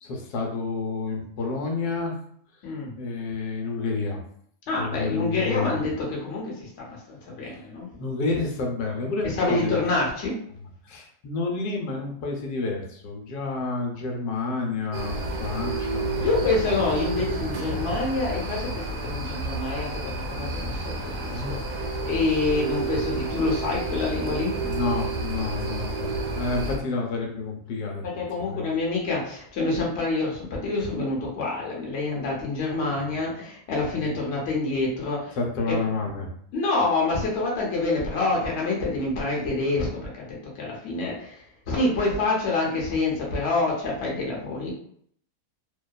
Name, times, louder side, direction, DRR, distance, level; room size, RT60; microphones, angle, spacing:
voice 1, 0.0-2.1 3.0-4.2 4.8-5.9 7.4-7.6 7.9-9.8 10.8-16.5 21.3-21.5 24.6-28.0 28.5-28.6 33.9-34.1 35.4-36.3, left 3 dB, 85° left, 1 dB, 1.1 m, -29 dB
voice 2, 4.7-7.9 9.2-10.4 16.2-24.6 28.0-35.4 35.7-35.8 36.5-44.7, left 3 dB, 55° left, -3 dB, 0.9 m, -27 dB
sound 1, 14.9-26.8, right 2 dB, 70° right, 0.8 m, -30 dB
2.7 x 2.2 x 2.2 m, 0.65 s
omnidirectional pair, 1.6 m